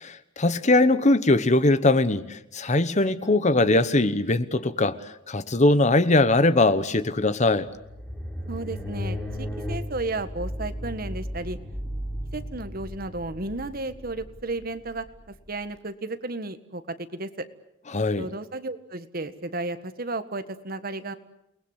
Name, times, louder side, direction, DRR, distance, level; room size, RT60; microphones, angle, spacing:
voice 1, 0.0-5.0 5.3-7.7 17.9-18.3, left 2 dB, 40° left, 1.1 m, -21 dB
sound 1, 7.4-15.6, equal, 5° left, 4.1 m, -35 dB
voice 2, 8.5-11.6 12.3-15.0 15.5-17.5 18.2-21.1, right 2 dB, 50° right, 1.6 m, -33 dB
29.0 x 20.5 x 8.2 m
head